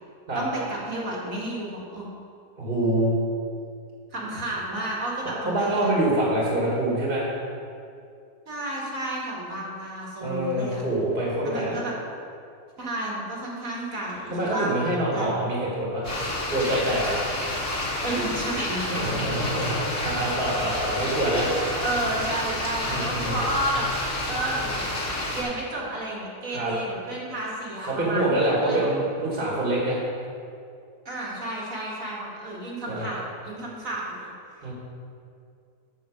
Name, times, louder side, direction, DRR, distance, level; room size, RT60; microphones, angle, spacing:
voice 1, 0.3-2.1 4.1-5.9 8.5-10.8 11.4-11.9 12.8-14.7 15.1-15.3 18.0-19.4 21.4-23.9 24.3-24.9 25.3-28.9 31.1-34.3, right 1 dB, 50° right, -4 dB, 2.2 m, -32 dB
voice 2, 2.6-3.2 5.4-7.3 10.2-11.8 14.3-16.1 16.5-17.2 18.9-21.5 22.9-23.4 26.5-26.7 27.8-30.0 32.9-33.1 34.6-34.7, right 1 dB, 30° right, -5 dB, 2.0 m, -25 dB
sound 1, 16.0-25.4, left 1 dB, 30° left, 2.5 m, -29 dB
8.4 x 6.3 x 6.4 m, 2.4 s
omnidirectional pair, 1.9 m